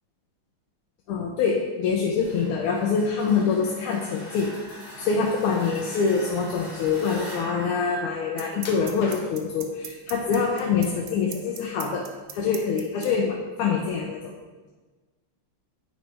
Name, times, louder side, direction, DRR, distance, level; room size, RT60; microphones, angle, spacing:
voice 1, 1.1-4.5 5.0-12.1 12.3-14.3, left 5 dB, 85° left, 0 dB, 1.6 m, -25 dB
sound 1, 2.2-8.9, equal, 25° left, 1.1 m, -42 dB
sound 2, 8.4-13.1, right 9 dB, 70° right, 1.2 m, -37 dB
sound 3, 8.6-9.6 10.3-11.0 11.4-12.3 12.6-12.8 13.4-13.5, left 4 dB, 65° left, 1.3 m, -41 dB
8.9 x 4.1 x 3.3 m, 1.3 s
omnidirectional pair, 2.3 m